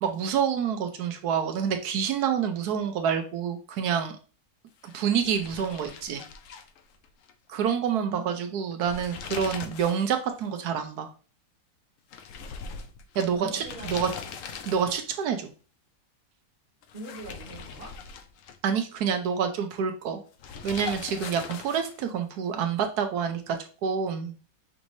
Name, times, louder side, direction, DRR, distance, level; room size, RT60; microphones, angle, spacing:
voice 1, 0.0-4.1 4.9-6.2 7.5-11.1 13.1-14.1 14.7-15.5 18.6-20.2 20.6-24.3, right 7 dB, 70° right, 6 dB, 1.1 m, -27 dB
sound 1, 4.8-7.3 7.6-7.7 8.7-10.1 10.4-10.5 12.1-15.2 16.8-18.8 20.4-22.1, left 6 dB, 90° left, 0.7 m, -41 dB
voice 2, 13.3-14.4 16.9-18.0, right 3 dB, 35° right, -2 dB, 1.9 m, -43 dB
6.1 x 3.1 x 2.6 m, 0.37 s
omnidirectional pair, 2.0 m